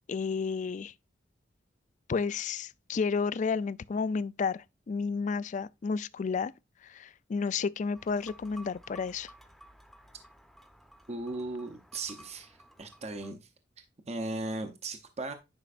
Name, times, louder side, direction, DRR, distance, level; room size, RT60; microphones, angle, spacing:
voice 1, 0.1-0.9 2.1-6.5 6.8-9.3, left 5 dB, 40° left, 0.3 m, -31 dB
sound 1, 7.9-13.3, right 1 dB, ahead, 0.8 m, -55 dB
voice 2, 11.1-13.5 13.8-15.3, right 2 dB, 35° right, 0.7 m, -37 dB
9.9 x 5.1 x 2.4 m
head